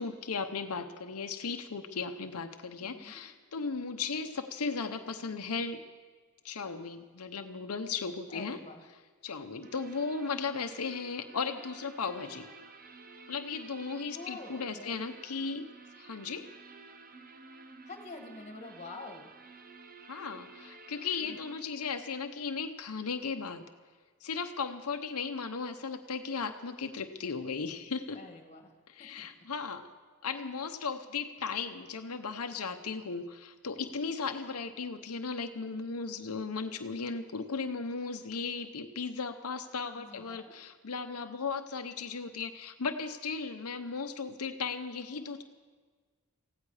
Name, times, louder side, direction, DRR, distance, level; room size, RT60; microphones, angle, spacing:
voice 1, 0.0-5.8 6.4-8.6 9.2-12.5 13.3-15.7 16.0-16.5 20.1-23.7 24.2-28.2 28.9-29.9 30.2-45.4, left 5 dB, 80° left, 6 dB, 0.9 m, -36 dB
voice 2, 2.8-3.2 8.3-8.8 14.1-15.0 17.8-19.3 21.3-21.4 28.1-28.7 29.2-29.3 40.0-40.5, left 3 dB, 30° left, 4 dB, 1.9 m, -46 dB
sound 1, 9.6-21.6, right 4 dB, 40° right, 1.0 m, -52 dB
18.5 x 15.5 x 4.9 m, 1.5 s
head